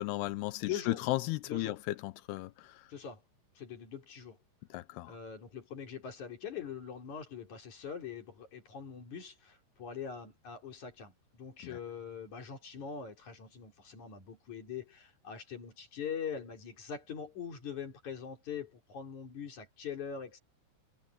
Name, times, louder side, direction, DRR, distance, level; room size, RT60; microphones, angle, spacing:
voice 1, 0.0-1.8 2.0-2.5 4.7-5.1, left 18 dB, 90° left, 2.3 m, -34 dB
voice 2, 0.6-1.0 1.5-1.8 2.9-3.2 3.5-4.4 5.1-20.4, left 7 dB, 40° left, 4.5 m, -42 dB
omnidirectional pair, 5.6 m